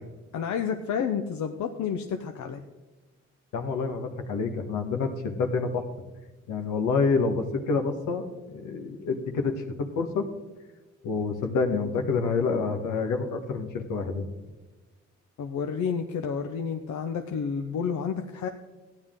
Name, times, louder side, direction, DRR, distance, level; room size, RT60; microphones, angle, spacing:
voice 1, 0.3-2.6 15.4-18.5, left 6 dB, 70° left, 5 dB, 0.8 m, -30 dB
voice 2, 3.5-5.8 6.5-9.5 10.0-10.3 11.0-14.2, left 4 dB, 85° left, 5 dB, 1.5 m, -27 dB
15.0 x 9.8 x 3.7 m, 1.1 s
cardioid pair, 90°, 30 cm